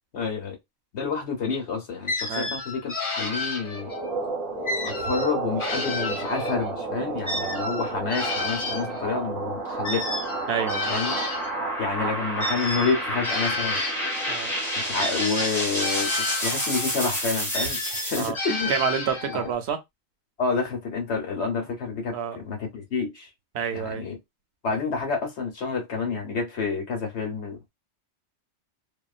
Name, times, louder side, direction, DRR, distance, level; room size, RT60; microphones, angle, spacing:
voice 1, 0.1-0.6 0.9-3.9 4.8-10.1 10.9-11.1 11.8-13.8 14.8-16.1 16.4-18.7 19.3-19.5 20.4-23.3 23.7-24.2 24.6-27.7, left 4 dB, 60° left, 1.1 m, -29 dB
sound 1, 2.1-4.1 4.7-6.7 7.2-11.6 12.4-14.4 15.0-17.0 17.5-19.5, left 2 dB, 30° left, 0.6 m, -31 dB
sound 2, 3.7-18.3, right 1 dB, ahead, 1.2 m, -30 dB
voice 2, 10.5-10.9 14.3-14.5 18.2-18.4 18.7-19.8 22.1-22.4 23.5-24.0, right 7 dB, 65° right, 0.8 m, -28 dB
2.8 x 2.1 x 2.4 m
omnidirectional pair, 1.3 m